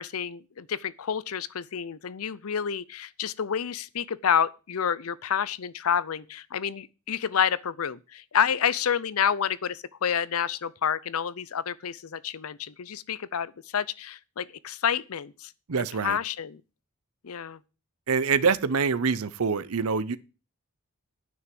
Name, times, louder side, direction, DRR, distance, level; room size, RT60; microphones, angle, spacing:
voice 1, 0.0-15.5 15.8-16.6 17.2-17.6, left 8 dB, 85° left, 0.6 m, -29 dB
voice 2, 15.7-16.2 18.1-20.2, right 5 dB, 85° right, 0.7 m, -25 dB
9.5 x 6.3 x 7.7 m
head